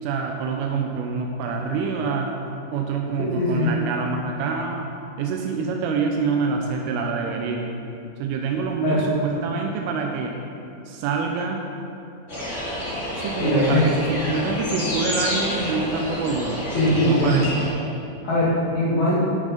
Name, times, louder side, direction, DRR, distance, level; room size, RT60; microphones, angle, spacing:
voice 1, 0.0-2.3 2.7-4.9 5.2-7.7 8.2-10.4 10.9-11.6 13.2-16.7 17.0-17.5, right 5 dB, 85° right, 2 dB, 3.2 m, -26 dB
voice 2, 3.4-3.7 8.8-9.0 13.4-13.9 16.7-17.4 18.2-19.1, left 1 dB, 60° left, -8 dB, 2.0 m, -21 dB
sound 1, 12.3-17.7, left 1 dB, 45° left, 0.9 m, -29 dB
13.0 x 5.4 x 5.0 m, 2.7 s
omnidirectional pair, 5.7 m